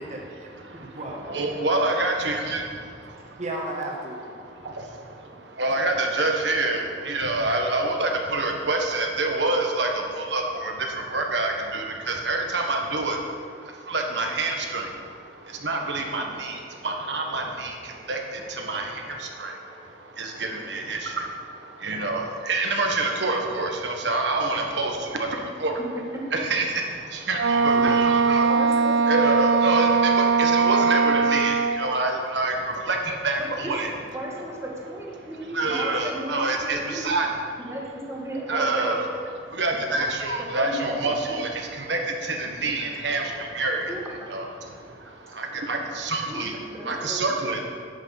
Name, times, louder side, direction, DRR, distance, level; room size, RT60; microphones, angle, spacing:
voice 1, 0.0-0.5 0.9-1.9 2.2-2.7 3.4-4.2 27.7-28.0, right 1 dB, 40° right, -1 dB, 1.6 m, -35 dB
voice 2, 0.5-1.0 1.3-3.4 4.4-25.8 26.3-28.5 29.1-33.9 35.2-37.7 38.5-39.1 39.5-44.0 44.3-46.6 46.8-47.6, right 2 dB, 70° right, 2 dB, 1.4 m, -27 dB
Wind instrument woodwind instrument, 27.3-31.9, right 5 dB, 90° right, 0.4 m, -20 dB
voice 3, 28.5-29.0 33.4-33.9 34.1-37.1 37.6-39.0 39.9-40.0 40.4-41.1 43.9-44.0 46.3-47.3, right 1 dB, 15° right, -2 dB, 1.9 m, -34 dB
10.5 x 6.2 x 7.2 m, 2.1 s
head